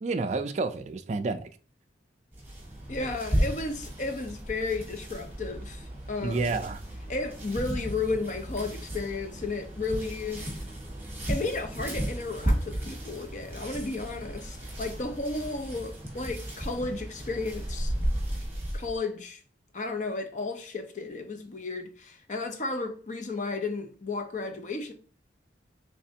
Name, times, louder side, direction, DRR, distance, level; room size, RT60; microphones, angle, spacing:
voice 1, 0.0-1.5 6.2-6.8, right 3 dB, 40° right, 0.3 m, -29 dB
sound 1, 2.3-19.0, equal, 10° right, 1.4 m, -34 dB
voice 2, 2.9-6.6 7.1-10.5 11.3-17.9 18.7-19.4 19.7-24.9, left 3 dB, 40° left, 0.6 m, -33 dB
4.2 x 3.3 x 2.7 m
head